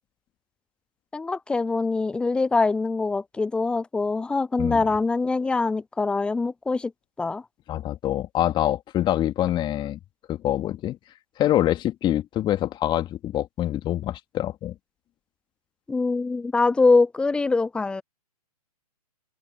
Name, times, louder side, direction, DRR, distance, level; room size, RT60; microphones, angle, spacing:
voice 1, 1.1-6.9 7.2-7.4 15.9-18.0, left 3 dB, 5° left, 0.4 m, -23 dB
voice 2, 7.7-10.0 10.3-11.0 11.4-14.7, left 12 dB, 25° left, 3.0 m, -25 dB
figure-of-eight pair, 120°, 20 cm